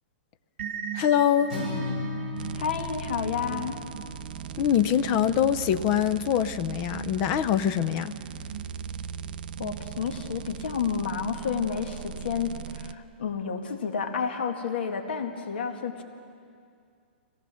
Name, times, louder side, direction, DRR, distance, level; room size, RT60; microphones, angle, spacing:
sound 1, 0.6-12.2, right 9 dB, 65° right, 2.2 m, -43 dB
voice 1, 0.9-1.5 4.6-8.2, left 9 dB, 25° left, 0.5 m, -24 dB
Acoustic guitar, 1.5-5.7, left 2 dB, ahead, 5.9 m, -37 dB
sound 2, 2.4-12.9, right 8 dB, 50° right, 0.5 m, -39 dB
voice 2, 2.6-3.8 9.6-16.0, left 6 dB, 65° left, 2.0 m, -30 dB
25.0 x 18.5 x 6.3 m
hypercardioid pair, 175°, 6 cm